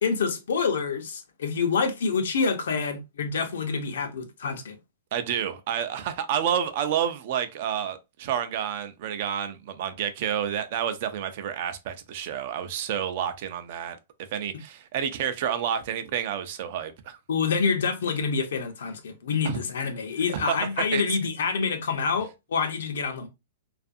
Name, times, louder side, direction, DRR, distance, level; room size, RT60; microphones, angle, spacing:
voice 1, 0.0-4.8 17.3-23.3, left 5 dB, 80° left, 0.6 m, -27 dB
voice 2, 5.1-14.0 14.3-17.2 19.4-19.6 20.3-21.0, right 9 dB, 50° right, 0.4 m, -29 dB
2.6 x 2.4 x 2.4 m
hypercardioid pair, 155°, 0 cm